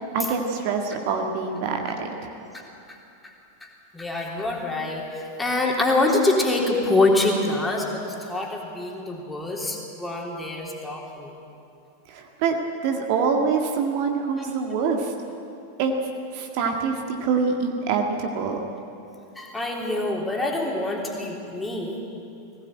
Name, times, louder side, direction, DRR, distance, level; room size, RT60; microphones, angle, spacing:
voice 1, 0.1-2.3 12.1-15.1 15.8-15.9 16.3-18.6, right 5 dB, 45° right, 2 dB, 1.8 m, -25 dB
voice 2, 3.6-11.3 19.4-22.0, left 2 dB, 5° left, -1 dB, 3.5 m, -25 dB
20.5 x 16.5 x 9.0 m, 2.7 s
figure-of-eight pair, 90°, 0 cm